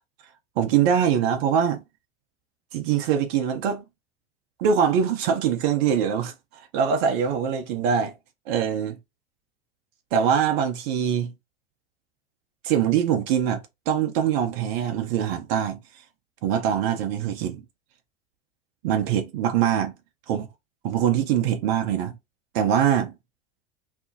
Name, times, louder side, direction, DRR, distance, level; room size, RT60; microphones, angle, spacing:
voice 1, 0.6-1.8 2.7-3.8 4.6-8.1 8.5-9.0 10.1-11.3 12.6-15.8 16.4-17.6 18.8-19.9 20.3-20.5 20.8-22.2 22.5-23.1, right 8 dB, 50° right, 0.6 m, -23 dB
2.4 x 2.1 x 2.6 m
figure-of-eight pair, 75°, 32 cm